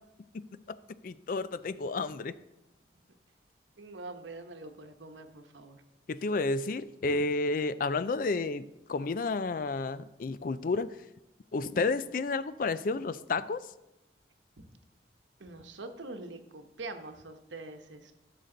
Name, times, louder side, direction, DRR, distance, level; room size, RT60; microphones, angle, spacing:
voice 1, 0.3-0.8 1.0-2.3 6.1-8.6 8.9-10.9 11.5-13.6, left 3 dB, 50° left, 15 dB, 0.4 m, -31 dB
voice 2, 3.8-5.8 14.6-14.7 15.4-18.1, right 2 dB, 85° right, 7 dB, 1.0 m, -44 dB
15.0 x 6.7 x 3.9 m, 0.95 s
head